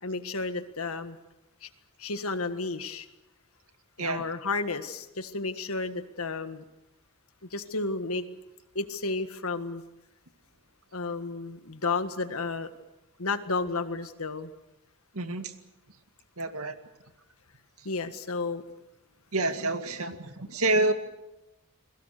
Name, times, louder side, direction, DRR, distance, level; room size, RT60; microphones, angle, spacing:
voice 1, 0.0-1.2 1.6-1.7 2.0-3.1 4.0-6.6 7.4-8.3 8.7-9.8 10.9-12.7 13.2-14.5 17.9-18.6, left 3 dB, 85° left, 10 dB, 1.7 m, -32 dB
voice 2, 15.1-15.5 16.4-16.8 17.8-17.9 19.3-20.9, right 2 dB, 85° right, 8 dB, 2.2 m, -28 dB
30.0 x 21.5 x 6.7 m, 0.93 s
head